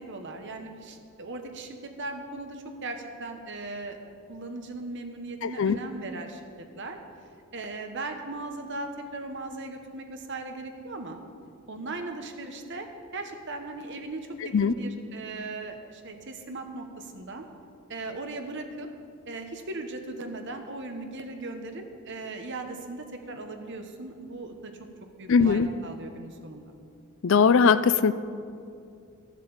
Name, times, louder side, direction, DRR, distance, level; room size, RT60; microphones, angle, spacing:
voice 1, 0.0-7.0 7.5-11.2 11.7-12.9 13.1-17.5 17.9-18.9 19.3-24.7 25.2-26.7, right 2 dB, 55° right, 5 dB, 1.2 m, -38 dB
voice 2, 5.4-5.8 14.5-14.7 25.3-25.7 27.2-28.1, left 5 dB, 60° left, 14 dB, 0.4 m, -20 dB
13.5 x 7.5 x 7.2 m, 2.4 s
head